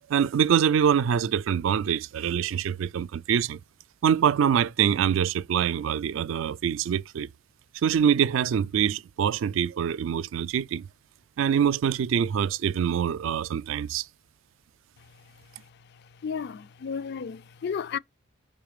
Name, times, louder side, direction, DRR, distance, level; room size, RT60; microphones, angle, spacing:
voice 1, 0.1-3.6 4.0-7.3 7.7-10.9 11.4-14.1, right 8 dB, 65° right, 0.3 m, -24 dB
voice 2, 16.2-18.0, left 6 dB, 55° left, 0.4 m, -33 dB
5.6 x 3.8 x 5.0 m
head